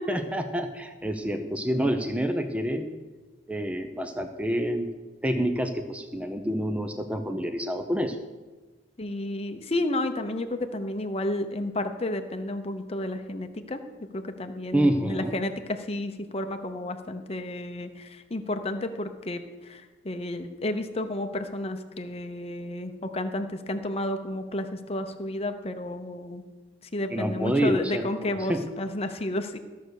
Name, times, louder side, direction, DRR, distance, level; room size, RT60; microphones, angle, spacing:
voice 1, 0.1-2.9 3.5-4.9 5.2-8.2 14.7-15.4 27.1-28.6, right 1 dB, 5° right, 6 dB, 0.6 m, -28 dB
voice 2, 9.0-13.8 14.1-26.4 26.9-29.6, left 1 dB, 35° left, 7 dB, 0.8 m, -31 dB
13.5 x 6.6 x 6.5 m, 1.3 s
head